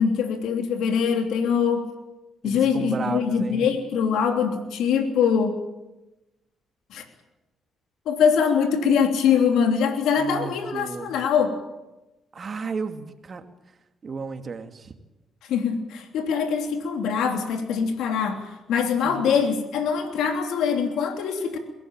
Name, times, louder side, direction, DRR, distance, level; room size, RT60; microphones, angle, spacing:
voice 1, 0.0-1.9 2.4-5.6 6.9-7.0 8.0-11.5 15.5-18.4 18.7-21.6, left 6 dB, 85° left, 5 dB, 3.1 m, -23 dB
voice 2, 2.4-3.7 10.2-11.1 12.3-13.4 14.0-14.9 19.0-19.3, right 5 dB, 40° right, 6 dB, 2.5 m, -33 dB
22.5 x 17.5 x 9.0 m, 1.0 s
cardioid pair, 90°, 0 cm